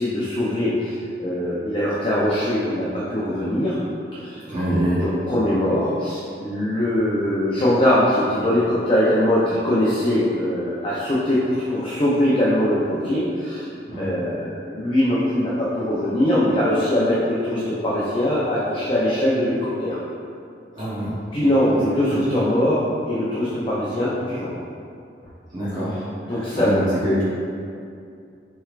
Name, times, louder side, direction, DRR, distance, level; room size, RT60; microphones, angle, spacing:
voice 1, 0.0-3.8 4.1-4.4 5.0-13.7 14.0-20.0 21.3-24.5 26.3-26.9, left 1 dB, 30° left, -9 dB, 0.6 m, -22 dB
voice 2, 4.5-5.0 13.9-14.1 20.8-21.1 22.1-22.2 25.5-25.9 26.5-27.2, equal, 25° right, -12 dB, 0.9 m, -24 dB
6.2 x 3.3 x 2.4 m, 2.4 s
head